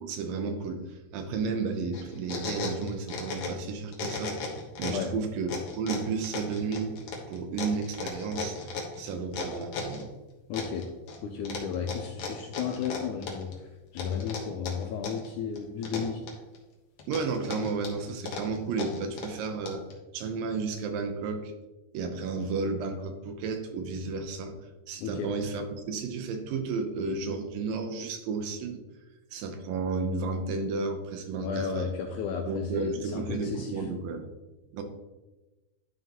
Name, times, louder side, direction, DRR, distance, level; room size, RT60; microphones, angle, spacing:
voice 1, 0.0-4.3 4.8-7.0 7.3-10.1 17.1-19.9 20.1-21.5 21.9-24.6 24.9-28.8 29.3-31.9 32.4-34.3 34.7-34.8, right 4 dB, 80° right, 6 dB, 2.5 m, -32 dB
sound 1, 1.9-3.7 3.9-5.1 5.5-10.0 10.5-11.2 11.5-13.6 14.0-15.3 15.6-16.6 17.0-19.9, left 4 dB, 60° left, 2.3 m, -36 dB
voice 2, 10.5-10.9 11.2-13.5 13.9-16.2 25.0-25.3 31.4-33.8, left 7 dB, 80° left, 4 dB, 1.8 m, -33 dB
11.0 x 5.6 x 2.9 m, 1.1 s
omnidirectional pair, 4.1 m